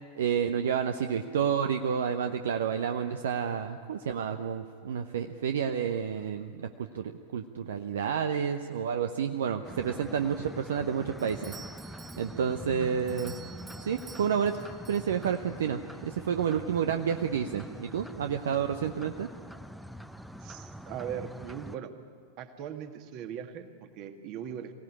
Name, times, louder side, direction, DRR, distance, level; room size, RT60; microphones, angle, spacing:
voice 1, 0.2-13.4 13.8-14.6 14.9-19.3, right 7 dB, 60° right, 7 dB, 0.8 m, -30 dB
sound 1, 9.6-21.8, equal, ahead, 0.8 m, -44 dB
Doorbell, 11.2-15.7, right 5 dB, 20° right, 1.2 m, -51 dB
voice 2, 20.4-21.9 22.4-24.7, right 8 dB, 40° right, 7 dB, 1.9 m, -39 dB
23.5 x 17.0 x 9.9 m, 2.4 s
figure-of-eight pair, 90°, 0 cm